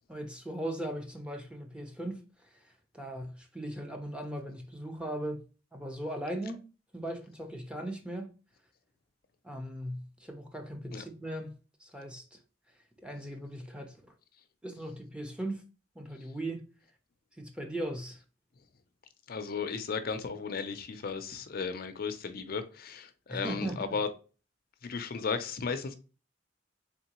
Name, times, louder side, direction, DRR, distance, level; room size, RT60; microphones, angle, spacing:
voice 1, 0.1-2.2 2.9-5.4 5.7-6.6 6.9-8.3 9.4-11.5 11.8-12.4 13.0-13.9 14.6-15.6 16.0-16.6 17.4-18.2 23.3-24.0, right 1 dB, 5° right, 0.6 m, -38 dB
voice 2, 19.3-24.1 24.8-25.9, left 5 dB, 55° left, 0.5 m, -35 dB
3.6 x 3.6 x 2.9 m
head